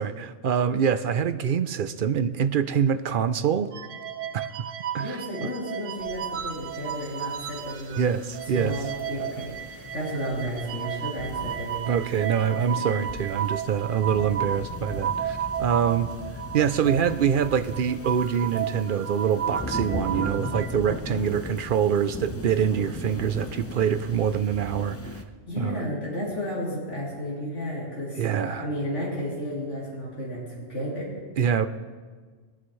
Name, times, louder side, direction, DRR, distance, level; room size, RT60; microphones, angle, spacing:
voice 1, 0.0-3.7 4.3-4.5 4.9-5.5 8.0-8.8 11.9-16.1 16.5-25.0 25.6-25.8 28.2-28.6 31.4-31.7, right 8 dB, 55° right, 11 dB, 0.6 m, -25 dB
sound 1, 3.7-8.1 8.3-20.7, right 9 dB, 85° right, 1.1 m, -33 dB
voice 2, 5.0-8.1 8.5-12.7 25.4-31.2, equal, 70° left, -7 dB, 3.5 m, -33 dB
sound 2, 6.0-25.2, left 1 dB, 15° left, 0.5 m, -39 dB
22.0 x 9.8 x 3.2 m, 1.5 s
omnidirectional pair, 1.3 m